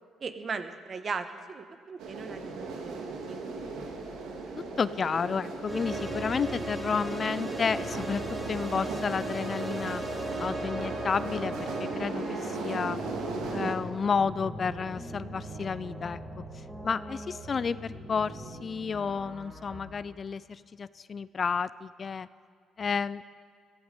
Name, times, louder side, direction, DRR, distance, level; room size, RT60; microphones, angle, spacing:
voice 1, 0.2-3.4, right 5 dB, 45° right, 9 dB, 1.1 m, -38 dB
sound 1, 2.0-13.8, right 3 dB, 90° right, 1.9 m, -36 dB
voice 2, 4.8-8.2 8.5-10.0 10.4-13.0 13.5-16.2 16.5-22.3 22.8-23.2, left 5 dB, 40° left, 17 dB, 0.3 m, -31 dB
sound 2, 5.7-19.8, right 1 dB, 20° right, 4.0 m, -39 dB
15.5 x 14.5 x 5.2 m, 2.3 s
cardioid pair, 90°, 0 cm